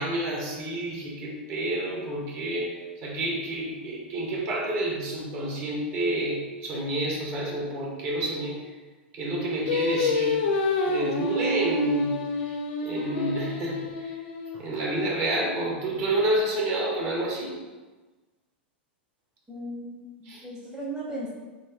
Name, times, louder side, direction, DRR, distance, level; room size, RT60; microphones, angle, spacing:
voice 1, 0.0-2.7 3.0-8.6 9.1-10.4 10.8-12.1 12.5-12.6 12.8-14.1 14.5-17.5 20.3-20.4, right 1 dB, 45° right, -3 dB, 1.4 m, -29 dB
Singing, 9.7-15.0, left 2 dB, 65° left, 0.6 m, -28 dB
voice 2, 19.5-21.3, right 1 dB, 10° right, -6 dB, 0.9 m, -36 dB
4.2 x 2.9 x 3.5 m, 1.2 s
hypercardioid pair, 105°, 6 cm